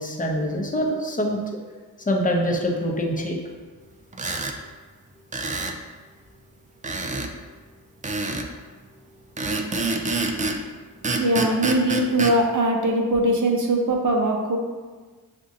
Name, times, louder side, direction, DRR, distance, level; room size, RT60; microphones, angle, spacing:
voice 1, 0.0-1.4 2.1-3.4, equal, 20° left, 0 dB, 0.8 m, -24 dB
sound 1, 4.1-4.6 5.3-5.8 6.8-7.3 8.0-8.5 9.4-10.6 11.0-12.4, right 3 dB, 20° right, 0.4 m, -26 dB
voice 2, 11.2-14.6, right 1 dB, 45° right, 1 dB, 0.8 m, -21 dB
6.0 x 2.6 x 2.7 m, 1.4 s
supercardioid pair, 55°, 44 cm